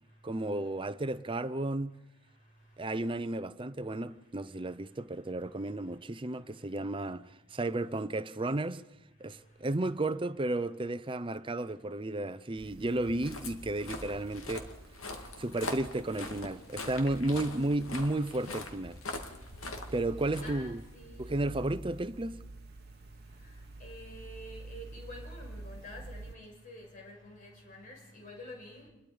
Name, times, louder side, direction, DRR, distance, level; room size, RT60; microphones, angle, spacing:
voice 1, 0.2-2.0 2.8-8.8 9.2-14.7 15.4-19.0 19.9-20.8 21.2-22.4, right 2 dB, 25° right, 0.7 m, -33 dB
sound 1, 12.6-26.3, right 2 dB, 50° right, 1.1 m, -49 dB
Walk footsteps, 12.9-21.2, left 2 dB, 85° left, 2.4 m, -43 dB
voice 2, 20.0-21.6 23.2-28.9, left 1 dB, 40° left, 6.3 m, -49 dB
27.5 x 21.5 x 5.1 m
head